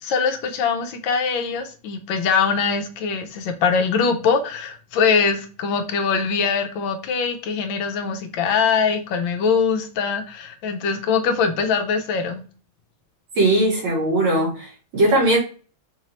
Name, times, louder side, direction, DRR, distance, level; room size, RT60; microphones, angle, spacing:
voice 1, 0.0-12.4, left 5 dB, 75° left, 1.4 m, -22 dB
voice 2, 13.4-15.4, right 1 dB, 80° right, 2.4 m, -19 dB
4.6 x 3.0 x 2.9 m
omnidirectional pair, 2.2 m